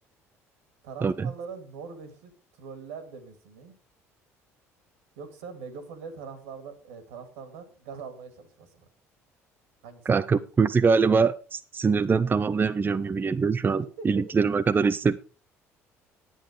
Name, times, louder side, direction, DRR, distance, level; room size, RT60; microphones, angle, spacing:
voice 1, 0.8-3.8 5.2-8.9 9.8-10.5 13.8-14.1, right 5 dB, 70° right, 9 dB, 2.2 m, -42 dB
voice 2, 10.1-15.2, right 5 dB, 25° right, 11 dB, 0.6 m, -23 dB
10.5 x 8.9 x 4.9 m, 0.37 s
figure-of-eight pair, 55°, 8 cm